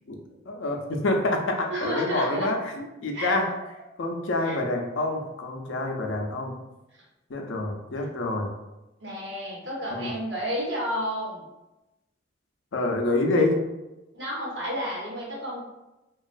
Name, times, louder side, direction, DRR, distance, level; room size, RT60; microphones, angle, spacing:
voice 1, 0.5-3.5 4.0-6.6 7.3-8.5 9.9-10.1 12.7-13.6, left 2 dB, 75° left, 2 dB, 0.5 m, -27 dB
voice 2, 1.7-2.5 3.1-3.4 4.4-4.6 7.9-8.1 9.0-11.4 14.1-15.6, equal, 65° right, -5 dB, 1.0 m, -31 dB
2.9 x 2.3 x 2.5 m, 0.99 s
head